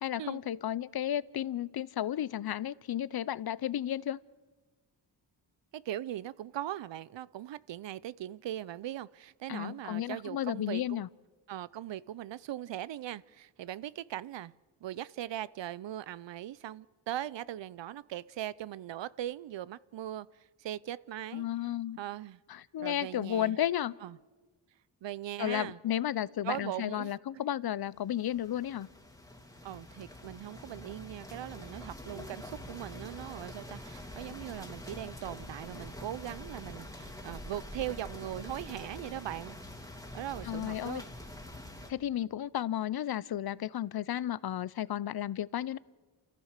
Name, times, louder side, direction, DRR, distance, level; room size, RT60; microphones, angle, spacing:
voice 1, 0.0-4.2 9.5-11.1 21.3-22.0 22.5-23.9 25.4-28.9 40.5-41.0 41.9-45.8, left 11 dB, 55° left, 0.6 m, -33 dB
voice 2, 5.7-11.0 11.5-14.5 14.8-20.3 20.6-21.5 22.0-22.4 22.8-23.6 24.0-24.2 25.0-25.8 26.4-27.4 29.6-39.6 40.1-41.1, right 12 dB, 75° right, 0.6 m, -40 dB
sound 1, 27.9-41.9, left 1 dB, 5° left, 2.4 m, -46 dB
29.0 x 14.5 x 6.6 m
cardioid pair, 85°, 44 cm